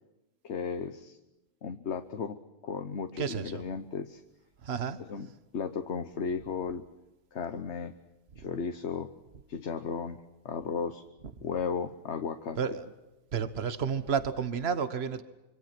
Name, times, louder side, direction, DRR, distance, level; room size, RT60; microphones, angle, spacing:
voice 1, 0.4-1.2 1.6-2.4 2.6-4.2 5.0-5.3 5.5-6.8 7.3-7.9 8.4-9.1 9.5-10.2 10.4-11.0 11.4-12.8, left 6 dB, 70° left, 8 dB, 1.3 m, -35 dB
voice 2, 3.2-3.6 4.6-5.0 8.4-8.5 12.6-12.9 13.3-15.2, right 7 dB, 60° right, 12 dB, 1.5 m, -31 dB
26.5 x 24.5 x 6.0 m, 1.0 s
omnidirectional pair, 1.2 m